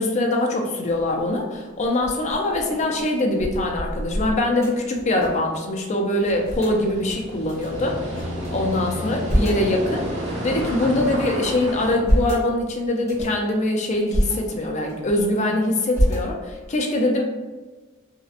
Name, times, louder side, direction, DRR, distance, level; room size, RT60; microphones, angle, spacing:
voice 1, 0.0-10.1 10.4-17.2, left 1 dB, 35° left, 1 dB, 0.4 m, -23 dB
sound 1, 0.9-1.3 1.8-5.5 5.8-5.9 6.2-6.8 7.4-8.5 8.9-9.7 10.3-11.2 11.7-12.4 13.0-13.4 13.9-14.3 14.8-15.5 15.9-16.7, equal, 15° left, 0.8 m, -27 dB
sound 2, 6.4-11.9, equal, 65° right, 1.0 m, -30 dB
2.7 x 2.0 x 2.4 m, 1.3 s
head